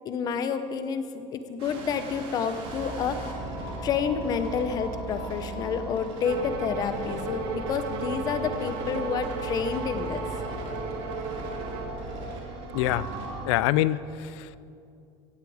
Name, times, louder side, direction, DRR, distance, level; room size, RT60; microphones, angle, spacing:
voice 1, 0.0-3.3 3.8-10.2, left 6 dB, 30° left, 10 dB, 0.8 m, -29 dB
sound 1, 1.6-13.5, right 2 dB, 40° right, 2.6 m, -36 dB
Bowed string instrument, 6.2-12.0, right 6 dB, 65° right, 1.7 m, -36 dB
voice 2, 12.7-13.1 13.5-14.6, left 14 dB, 90° left, 17 dB, 0.6 m, -25 dB
16.5 x 15.0 x 5.0 m, 2.5 s
cardioid pair, 180°, 14 cm